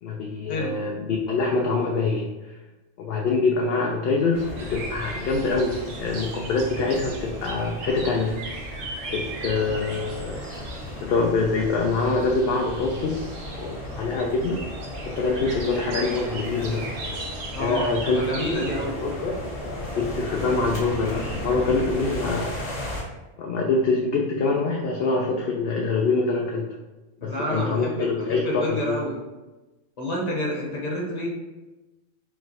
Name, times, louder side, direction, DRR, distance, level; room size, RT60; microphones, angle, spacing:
voice 1, 0.0-2.3 3.0-8.4 9.1-10.4 11.0-13.3 13.6-14.7 15.0-16.9 17.6-22.6 23.4-26.7 27.2-29.0, left 3 dB, 65° left, 0 dB, 0.7 m, -25 dB
sound 1, 4.3-23.0, left 1 dB, 80° left, 1.5 m, -35 dB
sound 2, 4.6-18.9, right 3 dB, 90° right, 1.1 m, -39 dB
voice 2, 17.5-19.0 27.2-29.2 30.0-31.3, equal, 35° left, -2 dB, 1.0 m, -29 dB
4.5 x 2.2 x 4.1 m, 1.1 s
omnidirectional pair, 1.3 m